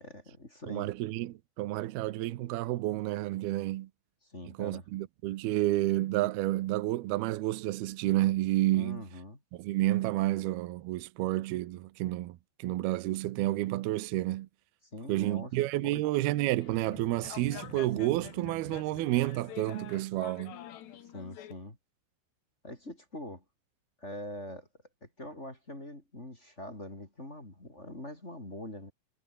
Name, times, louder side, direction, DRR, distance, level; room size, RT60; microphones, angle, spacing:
voice 1, 0.0-0.9 4.2-4.8 8.7-9.4 14.9-15.5 15.8-16.0 21.1-21.8 22.6-23.4 24.0-24.7 25.0-28.9, left 1 dB, 15° left, 4.3 m, -43 dB
voice 2, 0.7-3.9 4.6-9.0 9.5-14.5 15.1-20.6, right 16 dB, 75° right, 2.8 m, -30 dB
sound 1, 16.6-21.5, left 11 dB, 85° left, 4.2 m, -46 dB
omnidirectional pair, 4.7 m